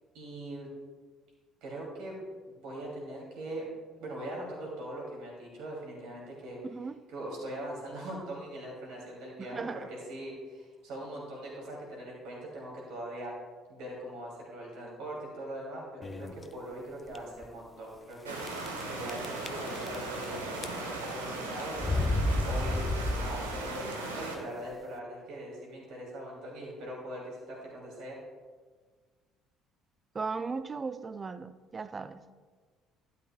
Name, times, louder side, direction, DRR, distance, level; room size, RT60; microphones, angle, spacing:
voice 1, 0.1-0.7 1.6-2.2 2.5-3.7 4.0-6.6 7.1-13.4 13.7-18.4 18.9-22.0 22.5-22.8 23.2-28.2, right 1 dB, 60° right, -3 dB, 3.0 m, -41 dB
voice 2, 6.6-7.0 9.4-9.9 30.1-32.3, right 4 dB, 30° right, 13 dB, 0.5 m, -37 dB
sound 1, 16.0-16.4 17.1-17.2 17.4-17.5 18.4-18.8 19.1-20.2 20.5-21.1 21.8-23.7, left 2 dB, 25° left, 0.6 m, -31 dB
sound 2, 18.3-24.4, right 2 dB, 85° right, 1.0 m, -37 dB
12.0 x 9.8 x 2.4 m, 1.5 s
figure-of-eight pair, 50°, 0 cm